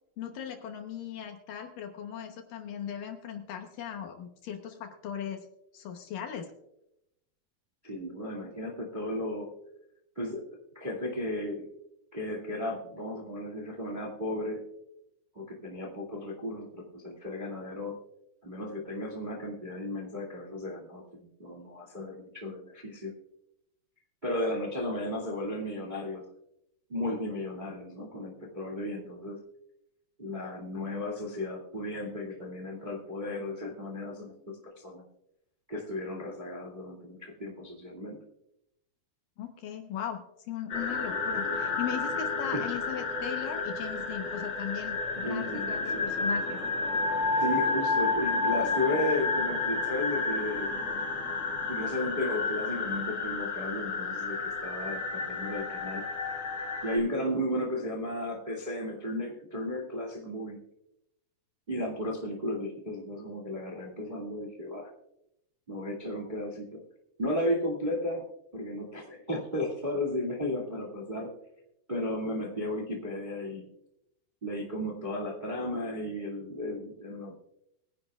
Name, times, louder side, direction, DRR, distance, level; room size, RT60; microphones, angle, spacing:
voice 1, 0.2-5.5 5.7-6.5 39.4-46.6, left 9 dB, 70° left, 4 dB, 2.4 m, -38 dB
voice 2, 7.8-9.5 10.1-10.4 10.7-11.7 12.1-14.6 15.3-17.9 18.4-23.1 24.2-26.3 26.9-29.4 30.2-34.3 34.8-35.0 35.7-38.2 42.5-42.7 45.2-46.1 47.3-50.7 51.6-56.0 56.8-60.6 61.7-64.9 65.7-66.8 67.2-68.2 68.5-71.3 71.9-73.7 74.4-77.4, left 1 dB, 20° right, -1 dB, 1.3 m, -34 dB
sound 1, 40.7-57.0, left 3 dB, 35° left, 2.7 m, -31 dB
22.0 x 10.5 x 2.4 m, 0.83 s
omnidirectional pair, 4.6 m